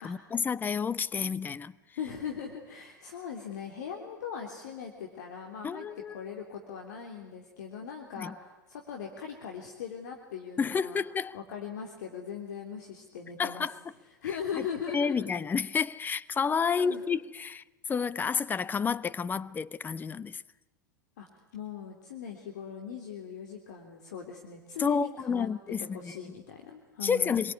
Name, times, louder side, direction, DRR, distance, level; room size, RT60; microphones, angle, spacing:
voice 1, 0.0-1.7 5.6-6.1 8.2-8.3 10.6-11.4 13.4-13.7 14.9-17.6 17.9-20.4 24.8-26.1 27.0-27.5, left 6 dB, 20° left, 0.8 m, -30 dB
voice 2, 2.0-5.9 6.1-11.0 11.3-13.8 14.0-15.3 16.8-17.0 21.2-25.5 25.8-27.5, left 7 dB, 60° left, 3.3 m, -40 dB
26.0 x 22.5 x 9.7 m
figure-of-eight pair, 90°, 10 cm